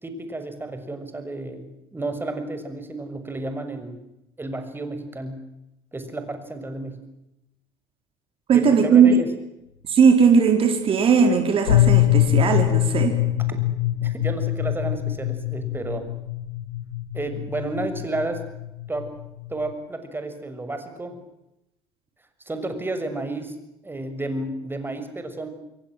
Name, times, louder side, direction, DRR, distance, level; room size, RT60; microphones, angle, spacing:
voice 1, 0.0-4.0 4.4-5.4 5.9-7.0 8.5-9.3 14.0-16.0 17.1-18.4 18.9-19.1 19.5-21.2 22.4-23.5 23.8-25.5, right 2 dB, 15° right, 8 dB, 6.7 m, -31 dB
voice 2, 8.5-9.2 9.9-13.2, right 6 dB, 45° right, 5 dB, 4.7 m, -18 dB
sound 1, 11.7-19.7, left 14 dB, 85° left, 1.5 m, -23 dB
27.5 x 22.5 x 7.8 m, 0.88 s
hypercardioid pair, 65°, 13 cm